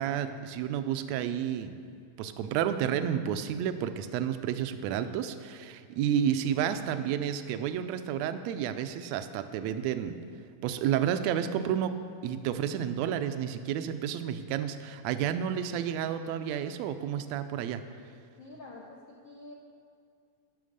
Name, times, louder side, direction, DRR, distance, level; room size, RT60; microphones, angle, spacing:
voice 1, 0.0-1.8 2.2-10.2 10.6-12.0 12.2-17.8, right 9 dB, 75° right, 10 dB, 1.7 m, -31 dB
voice 2, 18.4-19.5, left 2 dB, 80° left, -2 dB, 1.0 m, -47 dB
13.0 x 6.0 x 6.6 m, 2.4 s
omnidirectional pair, 3.4 m